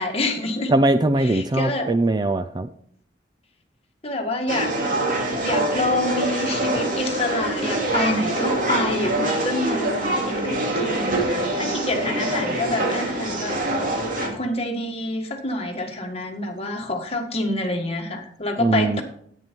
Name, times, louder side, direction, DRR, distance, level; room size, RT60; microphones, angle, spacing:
voice 1, 0.0-0.7 1.2-1.9 4.0-4.7 5.4-13.6 14.2-19.0, left 1 dB, 35° left, 3 dB, 1.8 m, -27 dB
voice 2, 0.7-2.7 18.6-19.0, right 2 dB, 25° right, 9 dB, 0.4 m, -20 dB
sound 1, 4.5-14.3, right 1 dB, 50° right, 2.5 m, -24 dB
10.5 x 9.2 x 4.6 m, 0.64 s
head